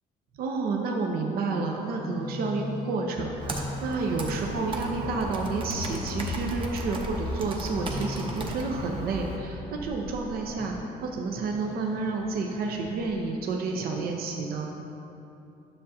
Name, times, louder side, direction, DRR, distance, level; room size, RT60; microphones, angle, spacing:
voice 1, 0.4-10.7 11.0-14.7, right 3 dB, 65° right, 1 dB, 0.7 m, -30 dB
Musical instrument, 1.7-13.5, left 2 dB, 85° left, 0.8 m, -41 dB
Car / Engine, 3.2-10.2, left 2 dB, 25° left, 0.4 m, -40 dB
Computer keyboard, 3.4-9.4, right 2 dB, 30° right, 0.8 m, -38 dB
10.0 x 6.5 x 2.8 m, 2.8 s
cardioid pair, 110°, 17 cm